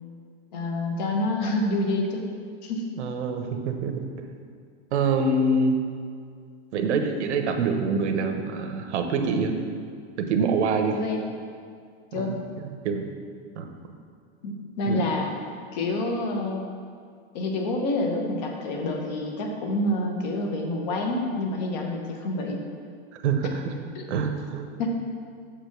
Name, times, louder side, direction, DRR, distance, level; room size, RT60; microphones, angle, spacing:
voice 1, 0.5-2.2 2.6-2.8 10.9-11.2 12.1-12.4 14.4-15.3 15.7-16.6 17.3-22.6 23.9-24.0 24.8-24.9, left 2 dB, 40° left, 2 dB, 1.0 m, -27 dB
voice 2, 3.0-4.0 4.9-5.7 6.7-9.5 10.2-11.0 12.1-13.1 13.6-13.7 14.9-15.1 23.2-23.7 24.1-24.8, right 4 dB, 80° right, 5 dB, 1.0 m, -25 dB
7.3 x 5.1 x 5.9 m, 2.2 s
supercardioid pair, 180°, 34 cm